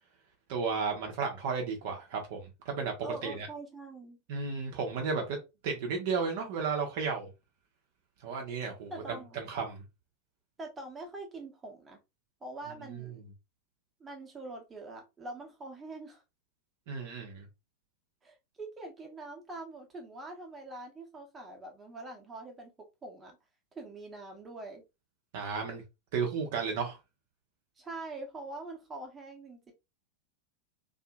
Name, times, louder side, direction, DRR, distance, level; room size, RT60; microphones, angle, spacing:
voice 1, 0.5-2.9 3.2-3.5 4.3-5.4 5.6-7.3 8.2-9.8 12.9-13.0 16.9-17.5 25.3-25.8 26.1-27.0, right 5 dB, 50° right, 0.7 m, -33 dB
voice 2, 3.0-4.2 8.9-9.4 10.6-12.0 12.4-13.2 14.0-16.2 18.2-22.7 23.0-23.4 23.7-24.8 27.8-29.7, right 2 dB, 15° right, 0.9 m, -44 dB
2.7 x 2.5 x 2.3 m
figure-of-eight pair, 90°, 0 cm